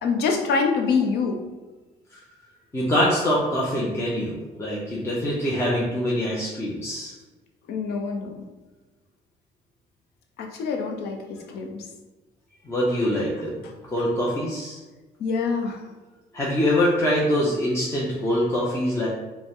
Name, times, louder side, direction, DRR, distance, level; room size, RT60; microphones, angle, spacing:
voice 1, 0.0-1.4 7.7-8.4 10.4-11.9 13.6-13.7 15.2-15.8, left 5 dB, 75° left, 3 dB, 0.7 m, -25 dB
voice 2, 2.7-7.1 12.7-13.6 13.9-14.8 16.3-19.1, left 1 dB, 15° left, -6 dB, 0.7 m, -24 dB
5.0 x 2.2 x 3.7 m, 1.2 s
cardioid pair, 110°, 17 cm